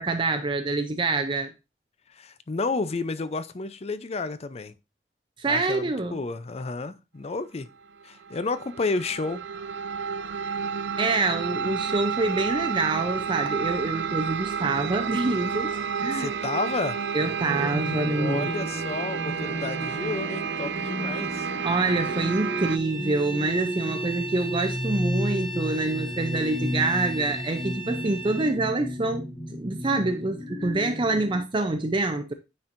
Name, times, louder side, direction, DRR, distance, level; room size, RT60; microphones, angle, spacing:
voice 1, 0.0-1.5 5.4-6.2 11.0-16.3 17.1-18.5 21.5-32.3, right 2 dB, 30° right, 0.5 m, -26 dB
voice 2, 2.2-4.7 5.5-7.7 8.0-9.4 16.1-17.0 18.1-21.5, left 3 dB, 35° left, 0.5 m, -31 dB
sound 1, 8.0-22.8, right 6 dB, 75° right, 0.4 m, -31 dB
sound 2, 17.4-31.4, equal, 55° left, 3.0 m, -33 dB
Bowed string instrument, 22.7-28.6, right 2 dB, 80° left, 3.1 m, -38 dB
9.4 x 4.4 x 2.5 m
head